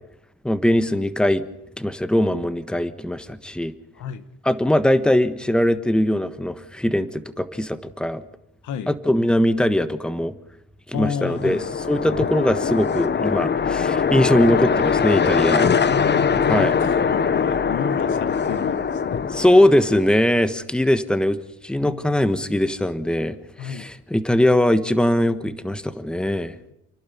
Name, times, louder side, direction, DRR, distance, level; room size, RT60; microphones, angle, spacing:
voice 1, 0.4-1.4 1.8-3.7 4.4-8.2 8.9-10.3 10.9-15.7 16.5-16.7 19.3-26.6, left 1 dB, 5° left, 12 dB, 1.3 m, -21 dB
voice 2, 8.6-8.9 10.9-11.6 15.9-19.2 21.8-22.2 23.6-23.9, left 8 dB, 75° left, 13 dB, 1.5 m, -31 dB
sound 1, 11.1-20.2, left 6 dB, 35° left, 1.0 m, -22 dB
29.5 x 11.5 x 8.6 m, 0.82 s
cardioid pair, 90°, 30 cm